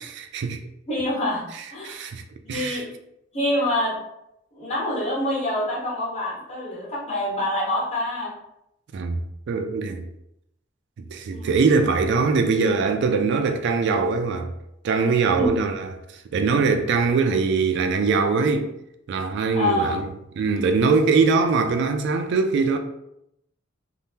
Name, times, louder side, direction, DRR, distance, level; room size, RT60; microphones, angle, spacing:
voice 1, 0.2-0.6 1.8-2.2 2.5-2.8 8.9-9.2 9.5-10.1 11.0-14.5 14.8-18.7 19.1-20.1 20.4-22.8, right 4 dB, 60° right, 0.3 m, -22 dB
voice 2, 0.9-2.1 2.4-2.9 3.3-4.0 4.5-8.3 11.3-11.5 15.4-15.5 19.5-20.0, left 1 dB, 35° left, 1.1 m, -26 dB
2.7 x 2.2 x 3.4 m
head